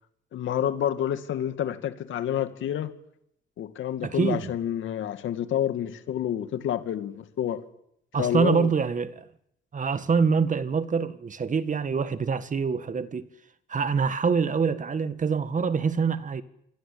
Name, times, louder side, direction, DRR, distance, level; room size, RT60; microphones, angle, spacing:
voice 1, 0.3-2.9 3.6-7.6 8.2-8.7, left 10 dB, 75° left, 2.4 m, -28 dB
voice 2, 4.0-4.5 8.1-9.3 9.7-13.2 13.7-16.4, right 5 dB, 40° right, 1.8 m, -25 dB
26.5 x 21.0 x 8.7 m
cardioid pair, 90°, 20 cm